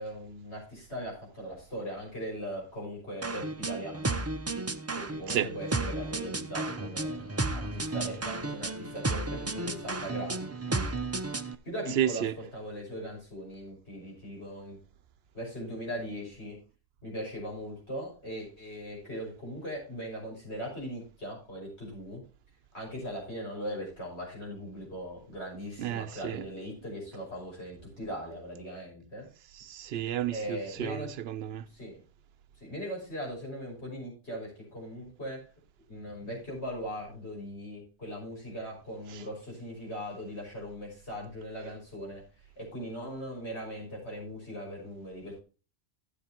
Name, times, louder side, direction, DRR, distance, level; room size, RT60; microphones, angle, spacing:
voice 1, 0.0-4.2 5.0-10.9 11.6-14.8 15.3-16.6 17.0-22.2 22.7-29.3 30.3-31.1 31.7-31.9 32.6-35.4 35.9-42.2 42.6-45.4, equal, 90° left, 6.1 m, -39 dB
sound 1, 3.2-11.5, right 2 dB, 25° right, 0.4 m, -33 dB
voice 2, 11.9-12.3 25.8-26.5 29.6-31.6 39.1-39.2, right 10 dB, 75° right, 0.8 m, -32 dB
13.0 x 8.1 x 2.9 m
omnidirectional pair, 1.1 m